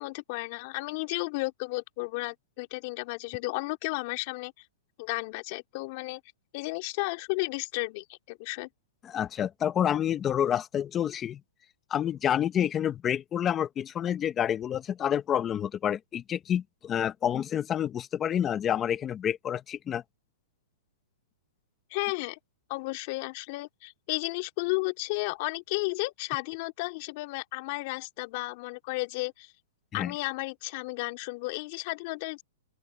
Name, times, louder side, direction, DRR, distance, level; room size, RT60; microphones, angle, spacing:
voice 1, 0.0-4.5 5.0-6.2 6.5-8.7 21.9-22.4 22.7-29.5 29.9-32.4, left 25 dB, 40° left, 3.5 m, -33 dB
voice 2, 9.0-11.4 11.9-20.0 29.9-30.1, left 9 dB, 20° left, 1.3 m, -28 dB
open air
hypercardioid pair, 150°, 0 cm